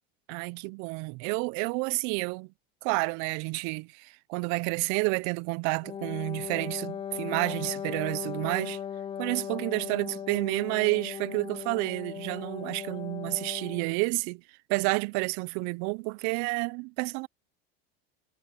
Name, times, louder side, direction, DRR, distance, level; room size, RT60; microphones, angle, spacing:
voice 1, 0.3-2.5 2.8-8.8 9.2-14.4 14.7-17.3, right 29 dB, 60° right, 0.5 m, -30 dB
Wind instrument woodwind instrument, 5.8-14.0, left 8 dB, 15° left, 0.4 m, -38 dB
supercardioid pair, 110°, 33 cm